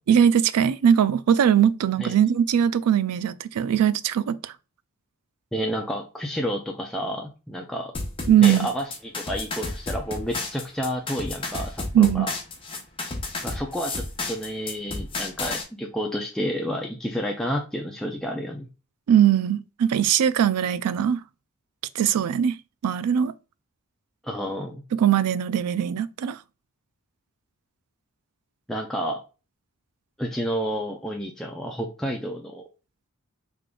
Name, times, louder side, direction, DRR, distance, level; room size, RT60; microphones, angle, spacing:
voice 1, 0.1-4.5 8.3-8.7 11.9-12.3 19.1-21.2 22.0-22.6 22.8-23.3 24.9-26.4, right 9 dB, 85° right, 0.3 m, -20 dB
voice 2, 5.5-7.9 8.4-12.3 13.4-18.7 24.2-24.8 28.7-29.2 30.2-32.6, equal, ahead, 0.3 m, -30 dB
sound 1, 7.9-15.6, left 3 dB, 25° left, 0.8 m, -32 dB
3.4 x 2.4 x 3.7 m
head